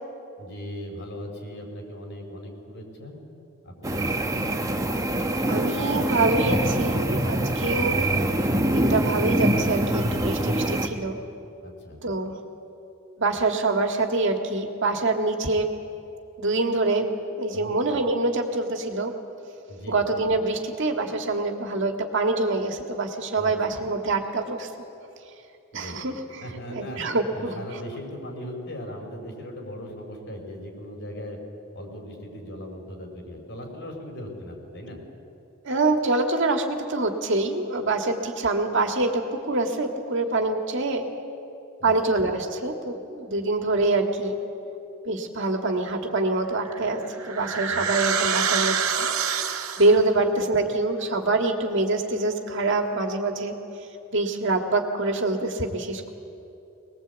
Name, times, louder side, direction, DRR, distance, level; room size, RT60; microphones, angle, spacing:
voice 1, 0.4-3.2 3.6-4.5 11.6-12.0 17.5-17.7 19.7-20.1 23.3-23.8 25.7-26.0 26.4-27.0 27.3-31.4 31.7-35.0 41.8-42.2 47.7-47.9, equal, 60° left, 1 dB, 5.0 m, -39 dB
sound 1, 3.8-10.9, right 1 dB, 15° right, 1.3 m, -24 dB
voice 2, 5.5-8.1 8.6-11.2 12.0-12.4 13.2-15.7 16.4-17.1 17.4-19.1 19.9-24.7 25.7-26.4 26.7-27.6 35.6-41.1 41.8-44.4 45.1-49.1 49.5-53.6 54.1-56.1, right 2 dB, 60° right, 4 dB, 2.0 m, -25 dB
sound 2, 46.6-50.1, right 6 dB, 90° right, 1.8 m, -26 dB
23.0 x 20.0 x 8.2 m, 2.8 s
head